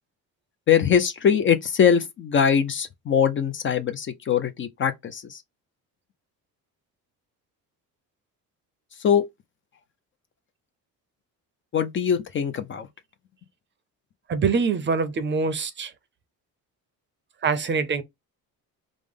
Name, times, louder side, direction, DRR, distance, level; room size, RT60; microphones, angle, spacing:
voice 1, 0.7-5.4 9.0-9.3 11.7-12.9, left 7 dB, 35° left, 0.4 m, -22 dB
voice 2, 14.3-15.9 17.4-18.0, right 5 dB, 30° right, 0.5 m, -24 dB
5.0 x 2.0 x 3.6 m
cardioid pair, 155°, 35 cm